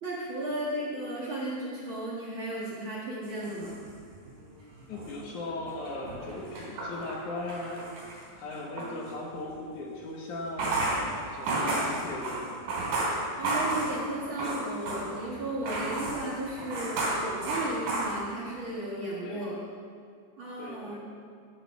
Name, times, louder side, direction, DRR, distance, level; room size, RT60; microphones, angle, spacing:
voice 1, 0.0-3.8 8.8-8.9 11.5-11.8 13.4-19.6 20.4-21.0, right 1 dB, 45° right, -5 dB, 2.0 m, -35 dB
sound 1, 3.2-4.5 4.8-9.0 10.4-15.3 15.6-18.6, right 2 dB, 75° right, 4.6 m, -32 dB
voice 2, 4.9-7.8 8.3-10.7 11.2-12.5 19.2-19.5 20.6-21.0, left 2 dB, 65° left, -1 dB, 2.7 m, -38 dB
13.5 x 11.0 x 4.8 m, 2.3 s
omnidirectional pair, 4.0 m